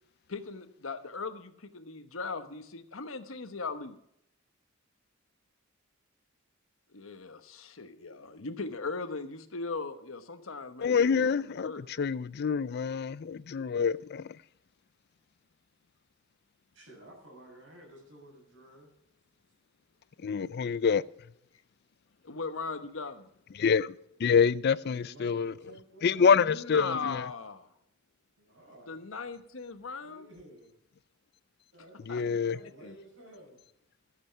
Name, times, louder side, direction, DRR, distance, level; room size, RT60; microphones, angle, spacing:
voice 1, 0.3-4.0 6.9-11.8 22.2-23.3 26.4-27.7 28.9-30.3 32.1-32.4 32.8-32.9, left 4 dB, 80° left, 1.1 m, -38 dB
voice 2, 10.8-14.4 20.2-21.0 23.6-25.5 26.0-27.2 32.1-32.6, left 6 dB, 55° left, 0.4 m, -26 dB
voice 3, 16.7-18.9 24.9-26.4 28.4-29.0 30.0-30.7 31.7-33.6, right 1 dB, 65° right, 6.0 m, -53 dB
14.5 x 8.0 x 5.7 m
head